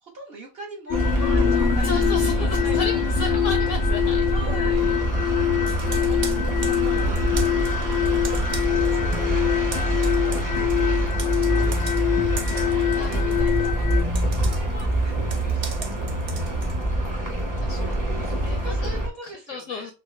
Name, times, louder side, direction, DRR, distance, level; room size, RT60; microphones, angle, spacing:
voice 1, 0.0-3.4 4.2-5.0 6.0-7.1 8.5-9.4 9.8-16.6 18.5-19.9, right 2 dB, 50° right, 0 dB, 0.8 m, -42 dB
sound 1, 0.9-14.0, left 13 dB, 35° left, 0.5 m, -25 dB
sound 2, 0.9-19.1, right 1 dB, 15° right, 0.7 m, -24 dB
voice 2, 1.8-4.3 12.9-13.2 17.6-19.9, left 4 dB, 65° left, 5 dB, 0.8 m, -34 dB
Computer keyboard, 5.7-9.2 9.5-16.8, right 4 dB, 70° right, 0.4 m, -39 dB
4.0 x 2.3 x 3.1 m, 0.30 s
omnidirectional pair, 1.7 m